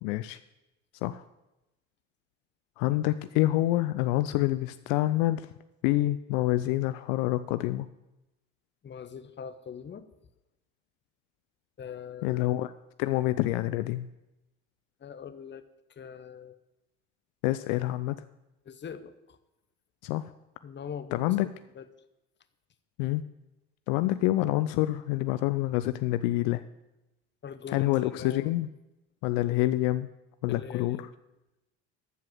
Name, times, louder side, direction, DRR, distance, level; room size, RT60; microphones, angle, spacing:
voice 1, 0.0-0.4 1.0-1.2 2.8-5.5 5.8-7.9 12.2-12.7 13.0-14.1 17.4-18.2 20.0-20.3 21.1-21.5 23.0-23.2 23.9-26.6 27.7-28.7 29.2-30.1 30.4-31.1, left 16 dB, 70° left, 13 dB, 0.5 m, -27 dB
voice 2, 8.8-10.1 11.8-12.5 15.0-15.6 15.9-16.6 18.6-19.4 20.6-21.4 21.7-21.9 27.4-28.6 30.5-31.1, left 7 dB, 30° left, 11 dB, 0.9 m, -42 dB
13.5 x 4.8 x 7.6 m, 0.97 s
hypercardioid pair, 70°, 36 cm